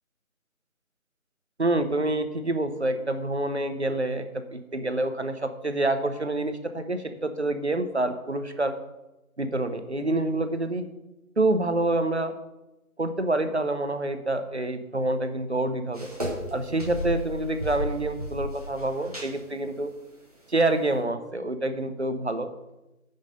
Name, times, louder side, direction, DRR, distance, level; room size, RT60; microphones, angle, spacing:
voice 1, 1.6-8.7 9.4-10.8 11.4-12.3 13.0-16.1 16.5-19.9 20.5-22.5, right 2 dB, 50° right, 9 dB, 0.8 m, -27 dB
sound 1, 15.9-16.5 16.8-17.3 17.6-19.3, equal, 25° right, 1.5 m, -33 dB
9.0 x 5.7 x 5.1 m, 0.98 s
figure-of-eight pair, 175°, 44 cm